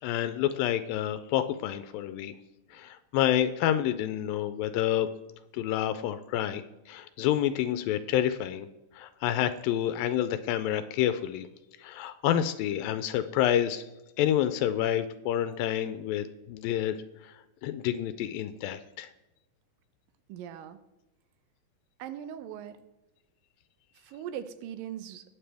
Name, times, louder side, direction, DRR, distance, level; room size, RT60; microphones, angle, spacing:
voice 1, 0.0-2.3 2.7-5.1 5.5-8.7 9.0-11.5 11.8-13.8 14.2-17.0 17.2-17.3 17.6-19.1, left 11 dB, 85° left, 11 dB, 2.3 m, -28 dB
voice 2, 20.3-20.8 22.0-22.8 23.9-25.2, right 10 dB, 80° right, 11 dB, 2.5 m, -40 dB
20.0 x 7.2 x 3.4 m, 1.0 s
omnidirectional pair, 4.1 m